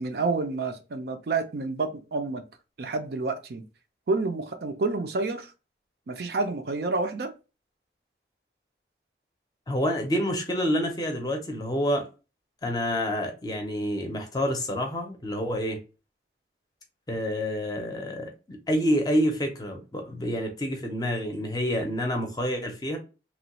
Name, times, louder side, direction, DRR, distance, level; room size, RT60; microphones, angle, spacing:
voice 1, 0.0-2.4 2.8-3.6 4.1-5.5 6.1-7.3, right 3 dB, 60° right, 0.4 m, -29 dB
voice 2, 9.7-12.1 12.6-15.8 17.1-23.0, equal, 20° left, 0.6 m, -28 dB
3.0 x 2.2 x 2.9 m
head